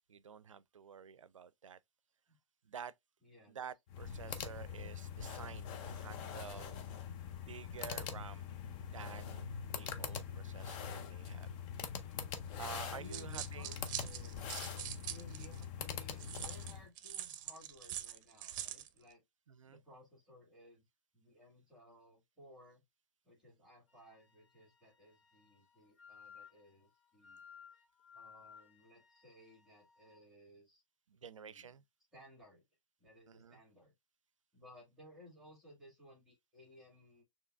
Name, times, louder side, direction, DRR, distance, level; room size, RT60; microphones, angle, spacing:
voice 1, 0.1-1.8 2.6-2.9 3.5-6.8 7.3-8.5 8.9-11.5 12.6-13.8 19.5-19.8 31.1-31.8 33.3-33.6, right 7 dB, 80° right, 0.4 m, -50 dB
voice 2, 3.2-3.6 12.9-14.4 15.1-19.2 19.7-20.9 21.1-22.8 23.2-27.4 28.1-30.8 31.2-31.7 32.1-32.6 33.0-33.9 34.5-37.2, equal, ahead, 1.9 m, -59 dB
sound 1, 3.9-16.9, left 7 dB, 30° left, 0.6 m, -43 dB
sound 2, 12.9-15.6 16.2-18.9, right 11 dB, 40° right, 0.6 m, -44 dB
Wind instrument woodwind instrument, 23.9-30.3, left 7 dB, 65° left, 1.4 m, -60 dB
6.6 x 3.0 x 2.2 m
figure-of-eight pair, 120°, 16 cm